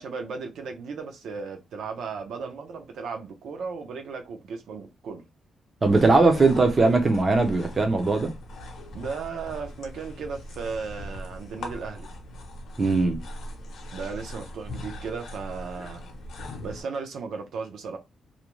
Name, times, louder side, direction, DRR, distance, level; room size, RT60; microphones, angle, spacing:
voice 1, 0.0-5.2 8.9-12.1 13.9-16.0 16.6-18.0, right 5 dB, 70° right, 0.5 m, -35 dB
sound 1, 5.8-16.8, left 1 dB, 60° left, 0.6 m, -40 dB
voice 2, 5.8-8.3 12.8-13.2, right 3 dB, 20° right, 0.4 m, -20 dB
2.5 x 2.1 x 3.0 m
wide cardioid pair, 170°, 0 cm